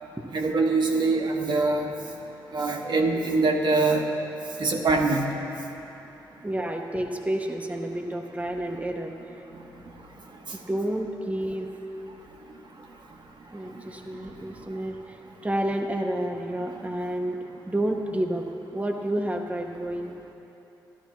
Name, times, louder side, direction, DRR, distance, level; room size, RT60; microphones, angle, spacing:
voice 1, 0.3-1.9 2.5-4.0 4.6-5.3, right 3 dB, 60° right, 1 dB, 1.1 m, -23 dB
voice 2, 6.4-9.3 10.5-11.7 13.5-17.4 17.6-18.5 18.7-20.1, right 1 dB, 15° right, 2 dB, 0.8 m, -30 dB
13.5 x 11.0 x 3.1 m, 3.0 s
cardioid pair, 55°, 9 cm